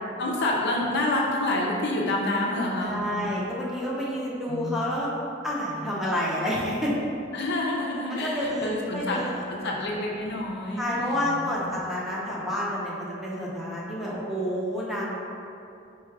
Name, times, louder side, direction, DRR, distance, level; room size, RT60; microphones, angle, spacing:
voice 1, 0.2-3.4 4.5-4.8 7.3-11.9, left 1 dB, 60° left, -2 dB, 0.6 m, -28 dB
voice 2, 2.8-5.1 5.4-6.9 8.2-9.8 10.8-15.0, equal, ahead, -7 dB, 0.7 m, -29 dB
4.6 x 2.4 x 4.6 m, 2.6 s
head